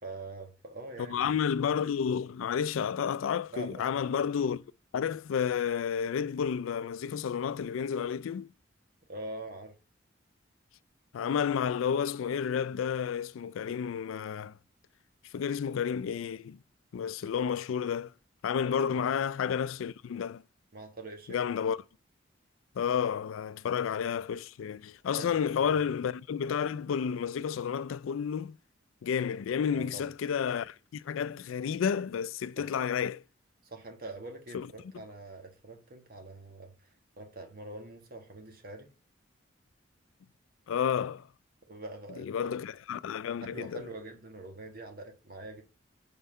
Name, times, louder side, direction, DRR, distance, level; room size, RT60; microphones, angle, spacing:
voice 1, 0.0-1.4 3.5-4.2 9.1-9.7 18.9-19.0 20.7-21.4 25.1-25.8 29.7-30.1 32.6-32.7 33.6-38.9 41.6-42.6 43.5-45.6, right 2 dB, 50° right, 1.4 m, -44 dB
voice 2, 1.1-4.6 4.9-8.5 11.1-14.6 15.3-16.6 16.9-18.1 18.4-20.4 21.3-21.8 22.8-28.6 29.0-33.2 34.5-34.7 40.7-41.3 42.2-43.8, left 7 dB, 90° left, 0.3 m, -31 dB
5.5 x 4.6 x 5.4 m
head